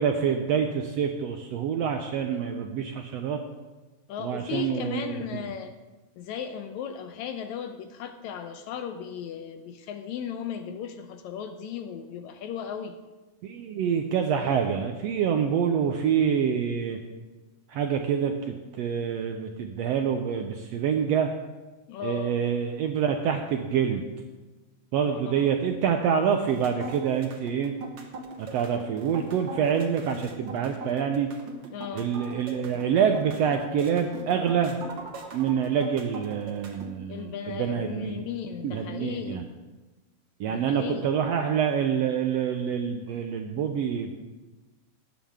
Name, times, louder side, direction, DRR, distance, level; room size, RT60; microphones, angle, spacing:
voice 1, 0.0-3.4 4.2-5.2 13.4-17.0 17.7-21.3 22.0-24.0 24.9-27.7 28.4-31.3 31.9-34.8 35.3-38.2 38.6-39.4 40.4-44.1, right 7 dB, 75° right, 5 dB, 1.5 m, -26 dB
voice 2, 4.1-5.7 6.2-13.0 21.9-22.4 25.0-25.5 31.7-32.2 37.1-39.5 40.5-41.1, left 8 dB, 80° left, 8 dB, 1.8 m, -36 dB
sound 1, 26.3-36.9, right 3 dB, 55° right, 1.4 m, -40 dB
18.5 x 9.2 x 3.6 m, 1.2 s
omnidirectional pair, 3.7 m